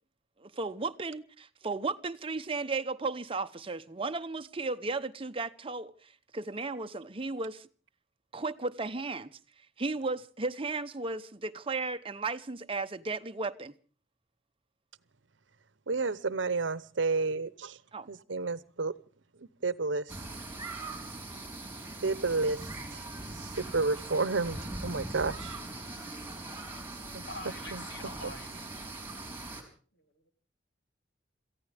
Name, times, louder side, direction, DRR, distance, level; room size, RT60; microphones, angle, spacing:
voice 1, 0.4-7.7 8.3-9.4 9.8-13.7 17.9-18.1, right 3 dB, 30° right, 0.8 m, -35 dB
voice 2, 15.9-17.8 18.1-18.9 19.6-20.1 22.0-23.0 23.3-25.6 27.1-27.2 27.7-27.8, right 3 dB, 80° right, 0.9 m, -31 dB
sound 1, 20.1-29.6, right 2 dB, 15° right, 3.9 m, -41 dB
voice 3, 27.3-28.5 29.9-30.3, left 1 dB, 65° left, 3.7 m, -45 dB
27.5 x 15.0 x 3.5 m
head